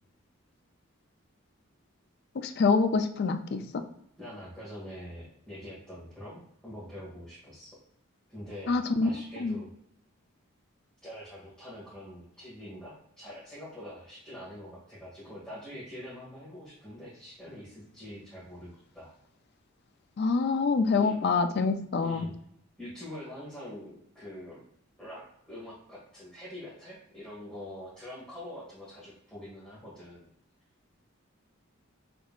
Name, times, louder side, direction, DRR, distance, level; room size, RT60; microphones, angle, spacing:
voice 1, 2.3-3.6 8.7-9.1 9.4-9.6 20.2-22.3, left 4 dB, 55° left, 8 dB, 0.4 m, -26 dB
voice 2, 4.2-7.7 8.3-9.7 11.0-19.1 20.9-21.2 22.0-22.3 22.8-24.6 25.0-30.3, left 1 dB, 5° left, -11 dB, 1.6 m, -44 dB
5.4 x 3.4 x 2.4 m, 0.73 s
head